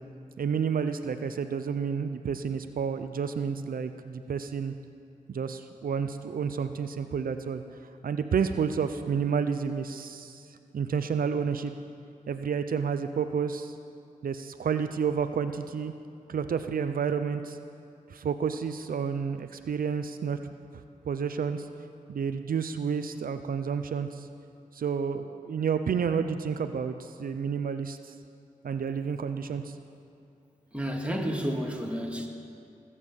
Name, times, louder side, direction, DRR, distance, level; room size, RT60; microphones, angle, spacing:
voice 1, 0.4-4.7 5.3-7.6 8.0-10.4 10.7-11.7 12.3-13.7 14.2-15.9 16.3-17.6 18.1-20.4 21.1-21.7 22.1-24.3 24.7-28.1 28.6-29.7, right 6 dB, 80° right, 9 dB, 0.6 m, -30 dB
voice 2, 30.7-32.3, equal, 10° right, 0 dB, 2.3 m, -31 dB
19.0 x 8.3 x 7.3 m, 2.5 s
cardioid pair, 60°, 14 cm